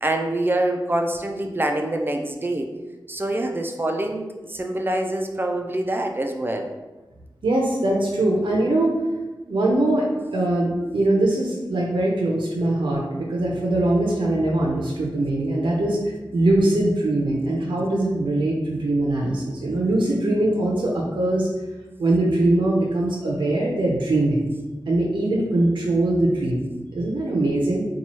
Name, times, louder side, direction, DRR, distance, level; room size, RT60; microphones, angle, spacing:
voice 1, 0.0-2.7 3.1-6.7, right 1 dB, 25° right, 3 dB, 0.3 m, -25 dB
voice 2, 7.4-8.9 9.5-16.0 16.3-21.5 22.0-24.4 24.9-26.6 26.9-27.9, right 1 dB, 85° right, -3 dB, 0.5 m, -22 dB
3.0 x 2.3 x 4.1 m, 1.1 s
wide cardioid pair, 90°, 8 cm